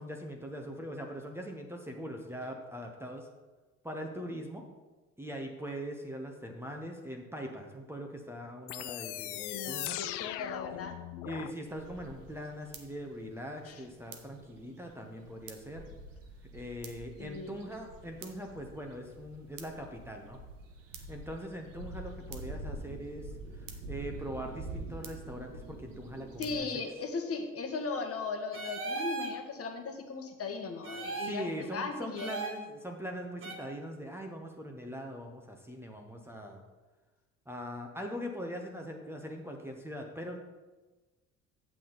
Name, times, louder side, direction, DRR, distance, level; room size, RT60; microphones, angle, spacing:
voice 1, 0.0-3.3 3.8-4.6 5.2-10.0 10.7-10.8 11.2-15.9 16.5-20.4 21.1-26.7 31.2-36.6 37.5-40.4, equal, 5° right, 2 dB, 1.1 m, -41 dB
sound 1, 8.7-11.5, left 14 dB, 70° left, 0.5 m, -39 dB
voice 2, 9.3-11.0 13.6-13.8 17.2-17.5 26.4-32.3, left 4 dB, 40° left, 5 dB, 1.5 m, -37 dB
sound 2, 11.7-26.6, right 2 dB, 80° right, 1.0 m, -46 dB
sound 3, 28.5-29.4 30.8-31.4 32.2-32.6 33.4-33.5, right 3 dB, 35° right, 1.5 m, -37 dB
8.5 x 7.5 x 4.0 m, 1.2 s
figure-of-eight pair, 55°, 38 cm